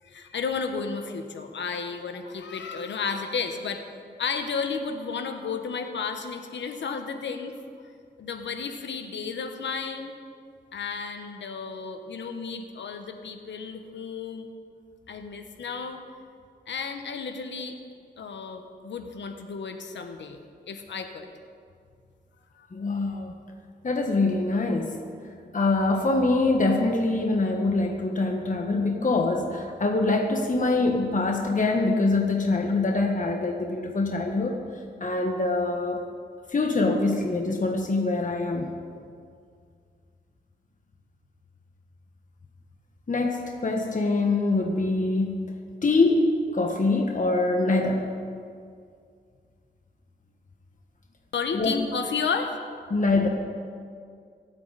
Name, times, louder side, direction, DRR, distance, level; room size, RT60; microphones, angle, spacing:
voice 1, 0.0-3.8 4.2-7.5 8.2-10.1 10.7-14.5 15.1-16.0 16.7-17.8 18.2-20.4 20.7-21.3 22.6-22.7 51.3-52.6, left 5 dB, 85° left, 6 dB, 1.3 m, -32 dB
voice 2, 22.7-23.3 23.8-25.0 25.5-34.6 35.0-36.0 36.5-38.7 43.1-45.3 45.8-48.1 51.5-51.7 52.9-53.3, left 2 dB, 45° left, 2 dB, 1.5 m, -24 dB
24.0 x 8.8 x 4.2 m, 2.2 s
cardioid pair, 60°, 18 cm